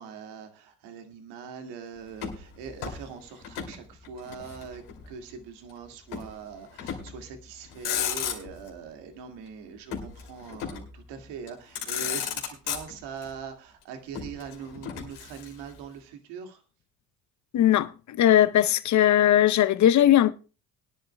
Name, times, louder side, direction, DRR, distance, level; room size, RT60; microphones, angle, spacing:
voice 1, 0.0-16.6, right 6 dB, 70° right, 2.3 m, -42 dB
Motor vehicle (road), 2.1-3.8 4.0-5.1 6.1-6.3 6.8-7.2 7.6-8.7 9.9-11.0 11.5-11.6 11.7-13.3 14.1-15.8, left 8 dB, 70° left, 2.9 m, -34 dB
voice 2, 17.5-20.3, left 12 dB, 40° left, 0.8 m, -19 dB
21.0 x 11.0 x 2.3 m
hypercardioid pair, 60°, 42 cm